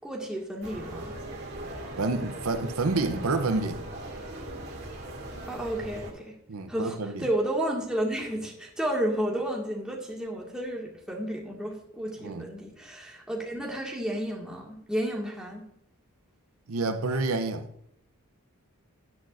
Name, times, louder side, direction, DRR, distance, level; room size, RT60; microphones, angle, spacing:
voice 1, 0.0-1.1 5.5-6.3 6.7-15.6, right 1 dB, 5° right, 1.9 m, -32 dB
sound 1, 0.6-6.1, right 1 dB, 45° right, 2.5 m, -39 dB
voice 2, 2.0-3.8 6.5-7.3 12.2-12.5 16.7-17.7, right 3 dB, 75° right, 0.7 m, -28 dB
11.0 x 9.9 x 2.6 m
head